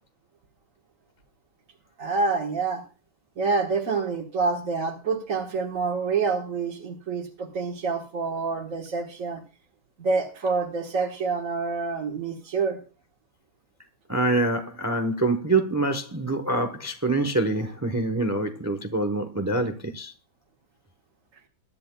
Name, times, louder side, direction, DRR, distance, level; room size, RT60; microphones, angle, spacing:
voice 1, 2.0-2.8 3.4-9.4 10.0-12.8, right 4 dB, 45° right, 1.7 m, -27 dB
voice 2, 14.1-20.1, right 2 dB, 25° right, 0.3 m, -25 dB
22.0 x 10.5 x 2.3 m
omnidirectional pair, 2.2 m